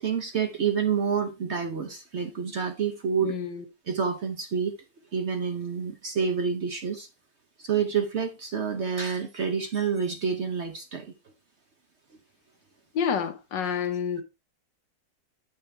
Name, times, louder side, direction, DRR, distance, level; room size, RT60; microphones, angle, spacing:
voice 1, 0.0-3.3 3.9-4.7 5.1-7.1 7.6-11.1, right 6 dB, 55° right, 0.8 m, -28 dB
voice 2, 3.2-3.6 12.9-14.2, left 7 dB, 85° left, 1.8 m, -28 dB
8.7 x 6.0 x 3.2 m
omnidirectional pair, 1.9 m